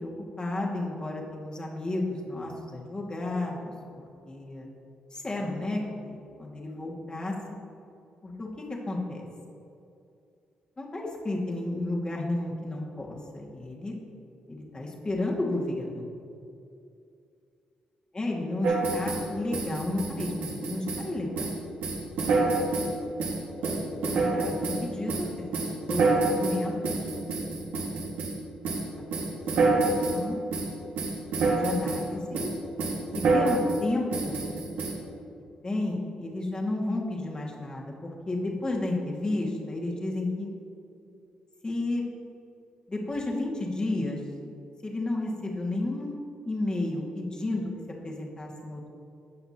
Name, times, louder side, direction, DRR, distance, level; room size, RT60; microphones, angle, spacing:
voice 1, 0.0-4.7 5.1-7.4 8.2-9.3 10.8-13.9 14.5-16.1 18.1-21.5 23.8-26.9 29.0-29.7 30.1-30.4 31.5-32.5 33.1-34.5 35.6-40.5 41.6-42.0 42.9-44.2 44.8-46.2 46.4-47.7 48.0-48.9, left 2 dB, 30° left, -2 dB, 2.1 m, -32 dB
sound 1, 18.6-19.3 19.5-21.1 21.4-21.6 21.8-22.9 23.2-24.8 25.1-28.3 28.6-28.9 29.1-30.2 30.5-30.7 31.0-32.0 32.3-32.5 32.8-33.8 34.1-34.9, right 3 dB, 80° right, 1.9 m, -27 dB
17.0 x 5.8 x 2.9 m, 2.6 s
supercardioid pair, 60°, 3 cm